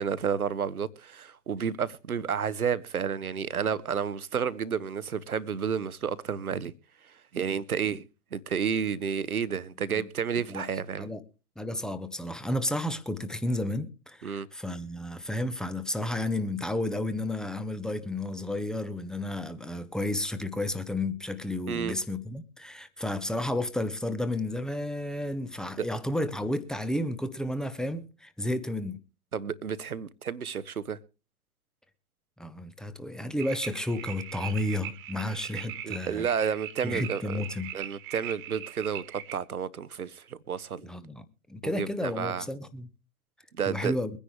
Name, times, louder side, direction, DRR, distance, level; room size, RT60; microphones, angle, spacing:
voice 1, 0.0-6.7 7.3-8.0 8.3-11.1 14.2-14.5 21.7-21.9 25.8-25.9 29.3-31.0 35.8-37.4 37.7-40.9 41.6-42.4 43.5-43.9, right 7 dB, 80° right, 1.1 m, -31 dB
voice 2, 11.6-29.0 32.4-36.3 36.8-37.7 40.8-41.2 41.5-42.9 43.7-44.1, left 1 dB, ahead, 0.8 m, -32 dB
sound 1, 33.4-39.4, right 10 dB, 25° right, 1.6 m, -40 dB
23.0 x 10.0 x 3.2 m
figure-of-eight pair, 110°, 43 cm